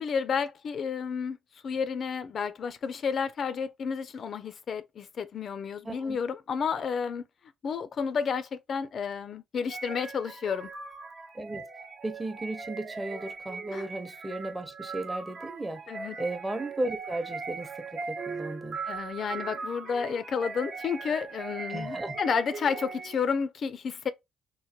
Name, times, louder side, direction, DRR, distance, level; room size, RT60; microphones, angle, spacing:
voice 1, 0.0-1.4 1.6-7.2 7.6-10.7 13.7-13.9 15.9-16.2 18.8-24.1, left 6 dB, 55° left, 0.3 m, -31 dB
voice 2, 5.8-6.2 11.3-11.6 12.0-15.8 16.2-18.8 21.7-22.2, right 1 dB, 15° right, 0.7 m, -35 dB
sound 1, 9.7-23.3, right 4 dB, 65° right, 0.9 m, -39 dB
3.0 x 2.1 x 2.8 m
cardioid pair, 90°, 0 cm